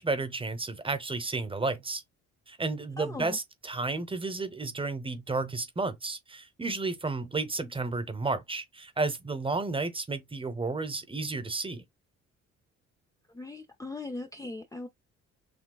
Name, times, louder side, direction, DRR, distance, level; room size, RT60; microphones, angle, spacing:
voice 1, 0.0-2.0 2.5-11.8, right 3 dB, 20° right, 0.9 m, -32 dB
voice 2, 3.0-3.4 13.3-14.9, left 2 dB, 10° left, 0.5 m, -39 dB
6.3 x 2.3 x 2.3 m
cardioid pair, 80°, 29 cm